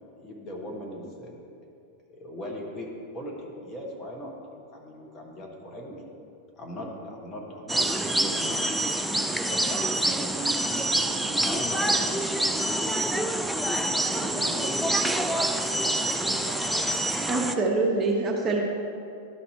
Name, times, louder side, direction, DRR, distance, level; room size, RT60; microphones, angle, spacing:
voice 1, 0.2-1.5 2.1-6.0 6.6-7.9 8.2-8.7 11.4-12.3, left 1 dB, 20° left, -2 dB, 1.5 m, -39 dB
sound 1, 7.7-17.5, right 1 dB, 5° right, 0.4 m, -26 dB
voice 2, 9.5-9.8 10.1-10.5 11.0-11.1 14.1-14.7 15.0-15.8 16.3-16.6, right 5 dB, 55° right, 2 dB, 0.9 m, -41 dB
voice 3, 17.3-18.6, right 3 dB, 25° right, 0 dB, 1.0 m, -25 dB
12.0 x 4.2 x 4.3 m, 2.6 s
figure-of-eight pair, 90°, 0 cm